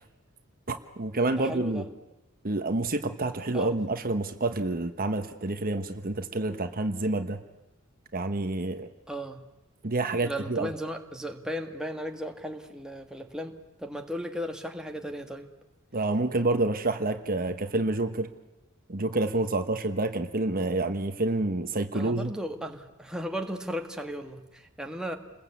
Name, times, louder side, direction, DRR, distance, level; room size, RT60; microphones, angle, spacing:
voice 1, 0.7-1.8 2.4-7.4 8.1-8.9 9.8-10.7 15.9-18.3 18.9-22.3, right 2 dB, 45° right, 8 dB, 1.2 m, -28 dB
voice 2, 1.3-1.9 3.5-3.8 9.1-9.4 10.2-15.5 21.9-25.2, equal, 5° right, 3 dB, 1.7 m, -36 dB
28.5 x 21.5 x 8.4 m, 0.98 s
head